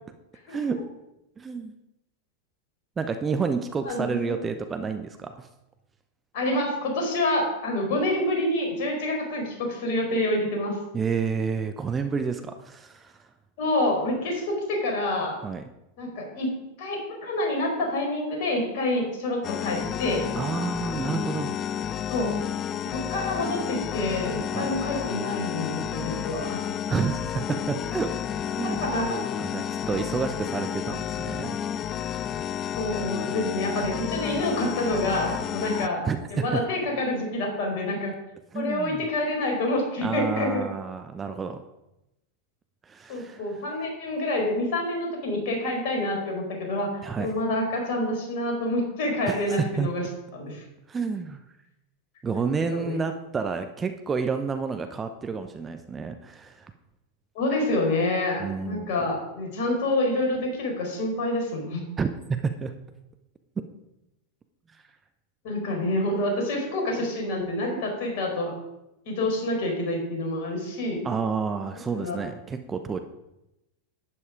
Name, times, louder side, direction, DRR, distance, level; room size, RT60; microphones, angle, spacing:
voice 1, 0.5-0.8 1.4-1.7 3.0-5.5 10.9-13.3 15.4-15.6 20.3-21.8 24.5-24.7 26.9-28.2 28.5-28.8 29.4-31.6 36.0-36.6 38.5-39.1 40.0-41.6 42.9-43.4 47.0-47.3 49.3-49.9 50.9-51.4 52.2-56.7 58.4-58.9 62.0-62.7 71.0-73.0, right 5 dB, 20° right, 8 dB, 0.8 m, -30 dB
voice 2, 3.8-4.2 6.3-10.8 13.6-15.4 16.0-20.3 22.1-22.4 22.8-26.6 28.6-29.2 32.7-36.0 36.3-38.1 38.5-40.7 43.1-50.0 50.3-50.6 52.7-52.9 57.3-61.8 65.4-68.5 69.0-71.0 71.9-72.2, left 1 dB, 50° left, 1 dB, 4.9 m, -27 dB
sound 1, 19.4-35.9, left 9 dB, 30° left, 0.5 m, -31 dB
11.5 x 9.9 x 5.0 m, 0.91 s
figure-of-eight pair, 90°, 0 cm